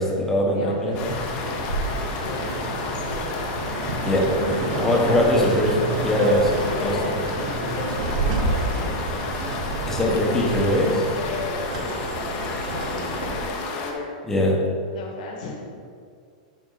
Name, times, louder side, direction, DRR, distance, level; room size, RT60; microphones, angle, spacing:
voice 1, 0.0-1.2 4.0-7.2 9.9-10.9 14.3-14.6, left 1 dB, 10° left, -2 dB, 1.4 m, -22 dB
voice 2, 0.5-1.7 2.2-3.4 4.7-5.3 6.5-8.9 10.0-11.7 12.4-14.1 14.9-15.5, left 4 dB, 65° left, -2 dB, 2.0 m, -35 dB
sound 1, 0.9-13.9, left 4 dB, 40° left, 1.2 m, -32 dB
sound 2, 0.9-13.5, right 2 dB, 65° right, 2.0 m, -30 dB
11.5 x 4.5 x 4.1 m, 2.2 s
supercardioid pair, 150°, 4 cm